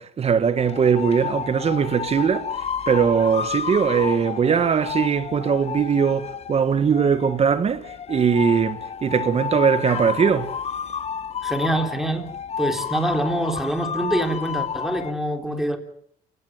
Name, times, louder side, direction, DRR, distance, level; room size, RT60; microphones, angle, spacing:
voice 1, 0.0-2.5 2.9-10.5, right 6 dB, 40° right, 1.5 m, -20 dB
sound 1, 0.6-15.1, left 7 dB, 40° left, 1.1 m, -31 dB
voice 2, 11.4-15.8, right 1 dB, ahead, 3.6 m, -25 dB
28.5 x 17.0 x 7.7 m
cardioid pair, 110°, 17 cm